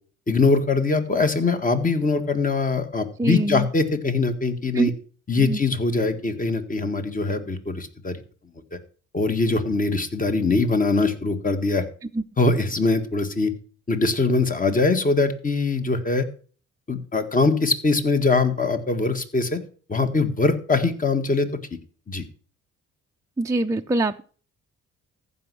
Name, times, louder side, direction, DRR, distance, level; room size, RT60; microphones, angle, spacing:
voice 1, 0.3-4.9 5.3-8.2 9.1-11.8 12.4-13.5 13.9-16.3 16.9-19.6 19.9-21.5 22.1-22.2, left 3 dB, 25° left, 8 dB, 1.8 m, -22 dB
voice 2, 3.2-3.7 4.7-4.9 5.4-5.6 12.1-12.2 23.4-24.2, right 2 dB, 10° right, 4 dB, 0.5 m, -23 dB
14.5 x 5.5 x 6.2 m, 0.40 s
cardioid pair, 90°, 30 cm